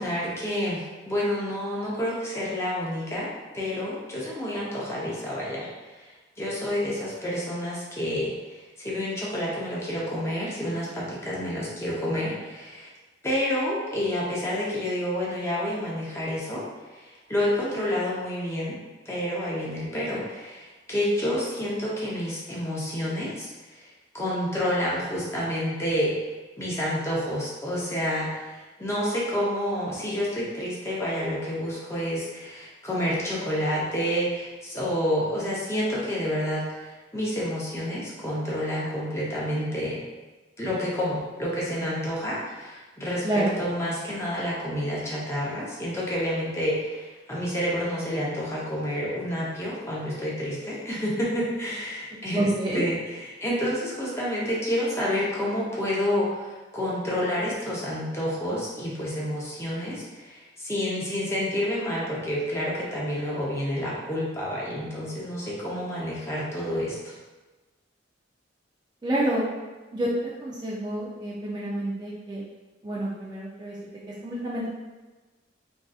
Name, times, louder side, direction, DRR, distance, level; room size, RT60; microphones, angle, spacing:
voice 1, 0.0-3.3 3.5-6.1 6.4-12.9 13.2-16.6 16.9-18.8 19.1-23.8 24.1-26.1 26.6-40.0 40.6-52.9 53.2-67.2, equal, 15° left, -6 dB, 0.7 m, -29 dB
voice 2, 43.2-43.6 52.3-52.8 69.0-69.5 69.9-70.1 70.4-72.4 72.8-73.8 74.1-74.7, right 1 dB, 20° right, -6 dB, 0.4 m, -28 dB
3.6 x 2.6 x 2.3 m, 1.2 s
head